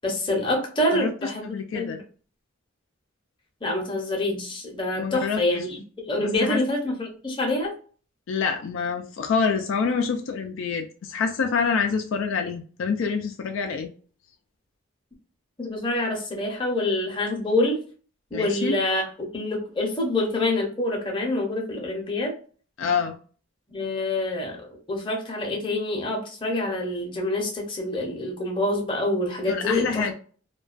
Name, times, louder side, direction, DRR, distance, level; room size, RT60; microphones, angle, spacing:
voice 1, 0.0-1.5 1.7-2.0 3.6-7.7 15.6-17.8 18.3-19.1 19.3-22.3 23.7-24.6 24.9-30.1, left 1 dB, 25° left, -1 dB, 0.6 m, -26 dB
voice 2, 0.9-2.0 5.0-5.7 6.2-6.6 8.3-13.9 18.3-18.8 22.8-23.2 29.5-30.1, left 5 dB, 70° left, 4 dB, 0.3 m, -27 dB
2.3 x 2.2 x 2.4 m, 0.41 s
head